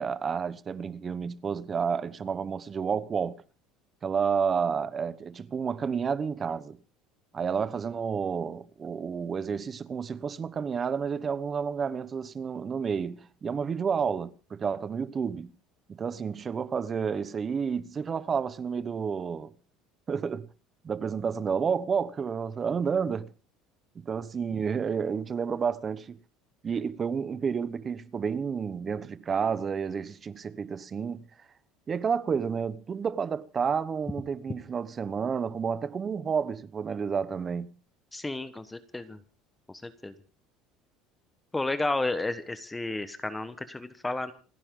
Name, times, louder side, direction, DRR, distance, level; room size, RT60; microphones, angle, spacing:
voice 1, 0.0-3.4 4.0-6.8 7.3-15.5 15.9-19.5 20.1-20.5 20.8-23.3 23.9-26.2 26.6-31.2 31.9-37.8, right 6 dB, 25° right, 0.9 m, -30 dB
voice 2, 38.1-39.2 39.7-40.1 41.5-44.3, left 2 dB, 10° left, 1.2 m, -32 dB
28.5 x 10.0 x 3.8 m
cardioid pair, 155°, 0 cm